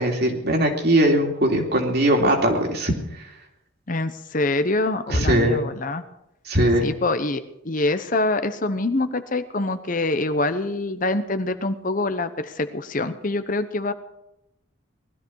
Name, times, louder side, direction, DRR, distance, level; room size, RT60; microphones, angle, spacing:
voice 1, 0.0-2.9 5.1-5.6 6.5-6.9, right 1 dB, 50° right, 1 dB, 2.9 m, -20 dB
voice 2, 3.9-6.0 6.8-13.9, left 2 dB, 40° left, 10 dB, 0.9 m, -25 dB
20.0 x 13.0 x 4.7 m, 0.84 s
head